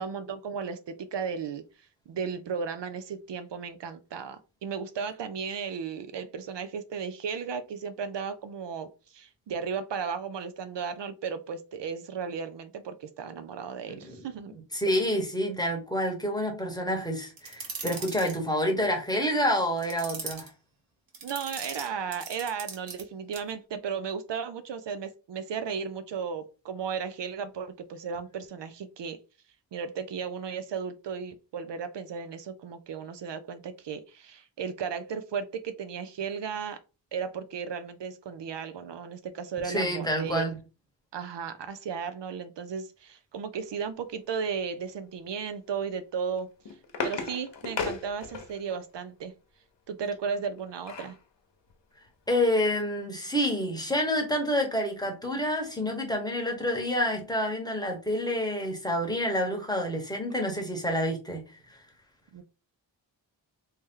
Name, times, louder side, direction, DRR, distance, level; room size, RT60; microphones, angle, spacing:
voice 1, 0.0-1.6 2.1-14.5 21.2-29.2 29.7-36.8 37.1-40.5 41.1-46.5 47.0-49.3 49.9-51.2 62.3-62.4, right 6 dB, 65° right, 0.5 m, -35 dB
voice 2, 13.9-14.2 14.5-20.5 39.6-40.6 52.3-61.4, equal, 10° left, 1.0 m, -28 dB
sound 1, 17.4-18.4 19.8-20.5 21.1-23.0 23.3-23.5, right 4 dB, 50° right, 1.0 m, -39 dB
sound 2, 46.3-48.8 50.3-51.2 51.7-51.8 52.1-52.3, left 4 dB, 65° left, 0.9 m, -35 dB
3.2 x 2.8 x 3.6 m
wide cardioid pair, 120°, 45 cm